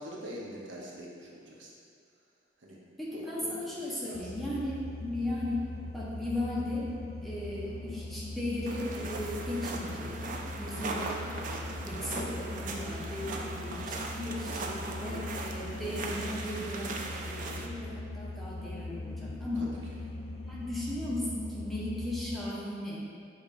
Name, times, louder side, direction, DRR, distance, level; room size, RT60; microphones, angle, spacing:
voice 1, 0.0-1.7 2.6-2.8 3.1-3.6 3.9-4.3 7.7-7.8 19.6-19.7, equal, 75° right, -4 dB, 0.8 m, -44 dB
voice 2, 3.0-5.6 5.9-6.9 7.2-10.3 10.5-11.4 11.8-19.7 20.4-23.0, left 1 dB, ahead, -8 dB, 0.7 m, -36 dB
sound 1, 4.1-22.4, left 2 dB, 35° left, 0.4 m, -40 dB
sound 2, 8.7-17.7, right 3 dB, 45° right, 0.3 m, -39 dB
6.4 x 2.9 x 2.6 m, 2.3 s
head